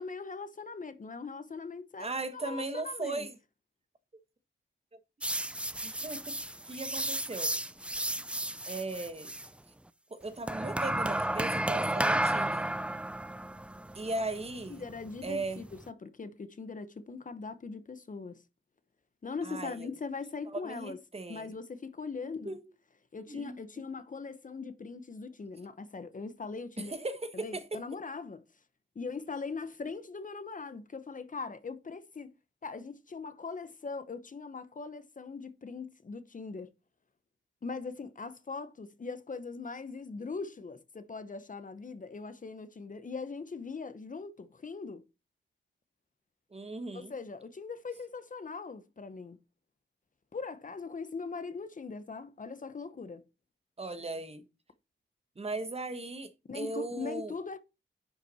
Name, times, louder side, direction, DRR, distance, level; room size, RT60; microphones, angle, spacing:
voice 1, 0.0-3.3 14.7-18.4 19.2-21.0 21.3-22.6 23.1-26.9 27.3-28.4 28.9-32.3 32.6-36.7 37.6-45.0 46.9-49.4 50.3-53.2 56.5-57.6, left 4 dB, 40° left, 0.9 m, -41 dB
voice 2, 2.0-3.3 4.9-5.0 5.8-7.5 8.7-9.3 10.1-12.7 13.9-14.8 15.2-15.6 19.4-19.9 20.5-21.5 22.4-22.6 23.3-23.6 26.8-27.8 46.5-47.1 53.8-54.4 55.4-57.3, right 2 dB, 30° right, 1.2 m, -38 dB
sound 1, 5.2-9.5 10.5-15.9, right 1 dB, 5° right, 0.4 m, -33 dB
10.5 x 5.7 x 4.2 m
wide cardioid pair, 130°, 21 cm